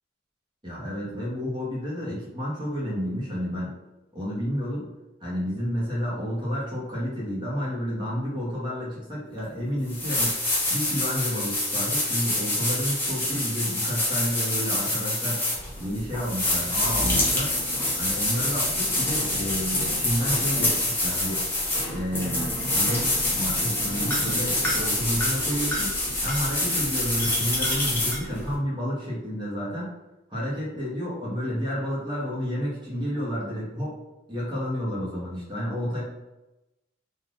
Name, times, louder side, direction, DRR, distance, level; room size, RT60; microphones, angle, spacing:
voice 1, 0.6-3.8 4.1-4.9 5.2-10.4 10.7-15.4 15.8-17.5 18.0-21.5 21.9-25.9 26.2-29.9 30.3-33.9 34.3-36.0, equal, 25° right, -6 dB, 1.0 m, -30 dB
sound 1, 9.4-9.5 9.9-28.5, left 1 dB, 10° left, 0.6 m, -26 dB
3.3 x 2.4 x 2.5 m, 0.97 s
head